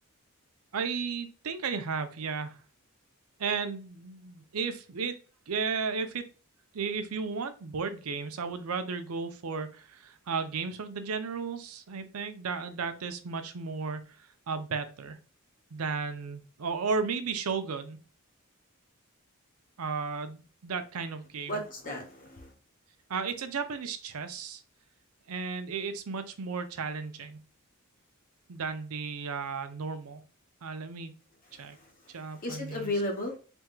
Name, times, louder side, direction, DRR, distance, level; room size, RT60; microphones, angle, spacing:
voice 1, 0.7-2.6 3.4-5.2 5.5-6.2 6.7-15.2 15.7-18.0 19.8-21.6 23.1-24.6 25.3-27.4 28.5-30.2 30.6-31.1 31.6-31.8 32.1-32.9, right 5 dB, 85° right, 9 dB, 0.6 m, -34 dB
voice 2, 21.5-22.5 31.6-31.9 32.4-33.4, left 1 dB, 40° left, 2 dB, 0.9 m, -34 dB
4.4 x 3.5 x 2.3 m, 0.36 s
head